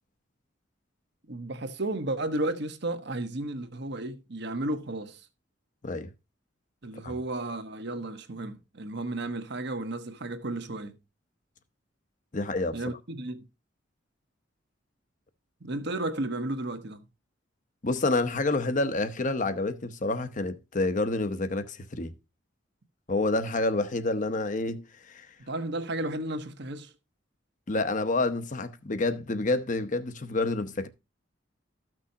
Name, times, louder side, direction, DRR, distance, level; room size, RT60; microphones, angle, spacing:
voice 1, 1.3-5.3 6.8-11.0 12.7-13.5 15.6-17.1 25.4-26.9, right 2 dB, 60° right, 1.2 m, -33 dB
voice 2, 12.3-12.8 17.8-22.1 23.1-25.3 27.7-30.9, left 2 dB, 40° left, 0.9 m, -28 dB
14.0 x 6.2 x 2.8 m
head